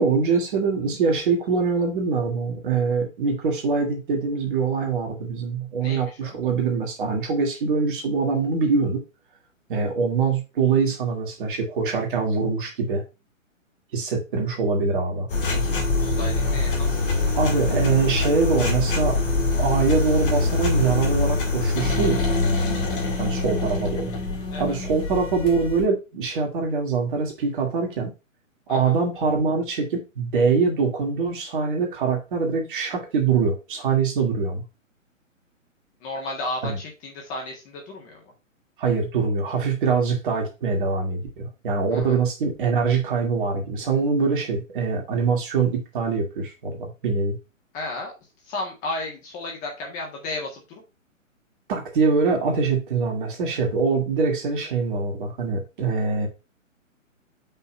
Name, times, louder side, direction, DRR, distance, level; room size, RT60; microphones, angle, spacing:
voice 1, 0.0-9.0 9.7-13.0 13.9-15.3 17.3-19.2 19.6-22.2 23.2-24.2 24.6-28.1 28.7-34.6 36.6-36.8 38.8-47.4 51.7-56.3, right 5 dB, 40° right, 2 dB, 2.2 m, -23 dB
voice 2, 5.8-6.4 15.4-17.3 22.6-22.9 24.5-24.8 28.7-28.9 36.0-38.2 41.9-42.2 47.7-48.1 48.4-50.8, left 2 dB, 20° left, 0 dB, 1.5 m, -34 dB
sound 1, 15.3-25.9, left 3 dB, 40° left, 1.8 m, -24 dB
5.7 x 3.6 x 5.5 m, 0.27 s
figure-of-eight pair, 130°, 40 cm